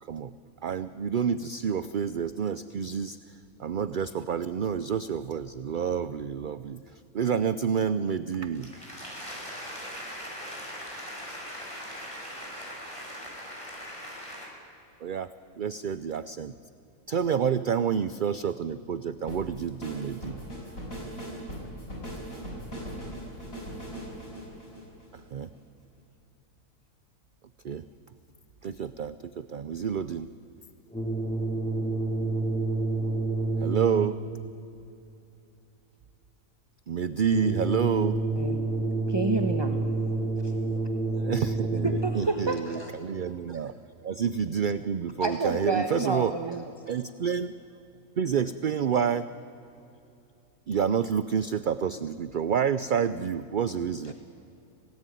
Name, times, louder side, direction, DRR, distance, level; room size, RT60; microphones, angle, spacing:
voice 1, 0.0-0.3 0.6-8.9 15.0-15.3 15.6-16.5 17.1-20.4 25.3-25.5 27.6-27.8 28.6-30.3 33.6-34.2 36.9-38.2 41.1-46.3 46.9-47.6 48.2-49.3 50.7-54.1, right 7 dB, 55° right, 0.6 m, -29 dB
voice 2, 8.5-14.5, equal, 20° left, 7.4 m, -40 dB
sound 1, 19.3-25.6, equal, 70° left, 6.6 m, -39 dB
sound 2, 30.9-34.4 37.3-42.4, right 2 dB, 5° left, 2.7 m, -28 dB
voice 3, 39.1-39.8 40.4-40.5 41.8-42.9 43.5-43.6 45.2-46.6 54.1-54.2, right 3 dB, 20° right, 1.2 m, -29 dB
27.0 x 18.0 x 9.1 m
omnidirectional pair, 1.5 m